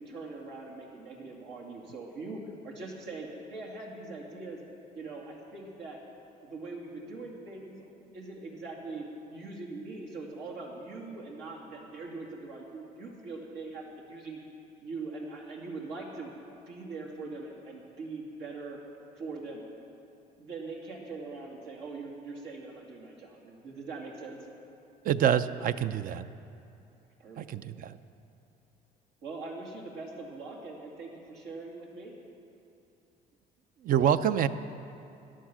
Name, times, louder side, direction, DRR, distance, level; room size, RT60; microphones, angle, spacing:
voice 1, 0.0-4.6 4.9-6.0 6.4-7.7 8.1-14.4 14.8-16.3 16.7-18.8 19.1-19.6 20.4-24.4 27.2-27.6 29.2-32.1, right 3 dB, 85° right, -2 dB, 2.6 m, -42 dB
voice 2, 25.0-26.3 27.4-28.0 33.8-34.5, right 9 dB, 55° right, 12 dB, 0.5 m, -26 dB
14.0 x 11.0 x 6.2 m, 2.8 s
cardioid pair, 110°, 17 cm